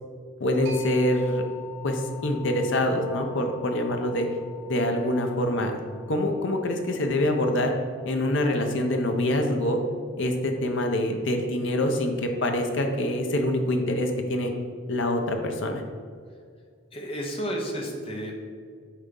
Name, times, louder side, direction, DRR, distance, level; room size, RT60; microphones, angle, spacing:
voice 1, 0.4-1.4 1.8-4.3 4.7-5.7 6.1-7.7 8.1-9.8 10.2-14.5 14.9-15.8, left 1 dB, 60° left, 4 dB, 0.7 m, -25 dB
sound 1, 0.7-10.0, left 7 dB, 60° right, 1.2 m, -47 dB
voice 2, 16.9-18.5, equal, 25° left, 0 dB, 0.9 m, -32 dB
7.2 x 4.1 x 3.8 m, 2.1 s
head